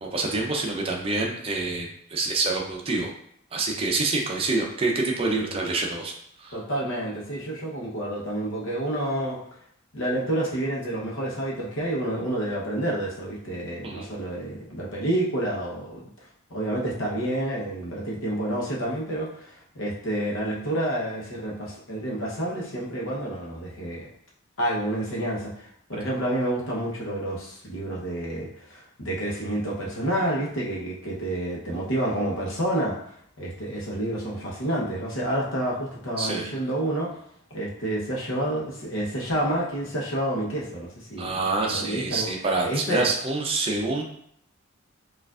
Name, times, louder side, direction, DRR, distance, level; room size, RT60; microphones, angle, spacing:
voice 1, 0.0-3.1 3.5-6.6 13.8-14.1 36.2-36.4 41.2-44.0, right 3 dB, 25° right, 0 dB, 0.5 m, -27 dB
voice 2, 5.4-5.8 6.5-9.4 9.9-16.1 16.5-24.1 24.6-33.0 33.4-37.1 37.5-41.4 41.7-43.1, right 1 dB, 65° left, -4 dB, 0.9 m, -29 dB
4.5 x 2.4 x 2.4 m, 0.69 s
head